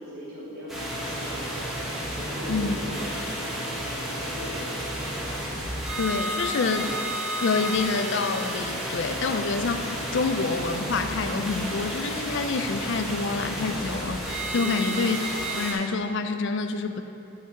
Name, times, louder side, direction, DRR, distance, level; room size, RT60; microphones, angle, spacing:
voice 1, 0.0-1.8 2.1-5.1 14.6-14.9, equal, 45° right, -12 dB, 1.7 m, -40 dB
sound 1, 0.7-15.7, equal, ahead, 1.3 m, -31 dB
voice 2, 6.0-7.0 7.4-15.2 15.5-17.0, left 4 dB, 50° left, 8 dB, 0.4 m, -27 dB
10.0 x 5.3 x 4.0 m, 2.7 s
head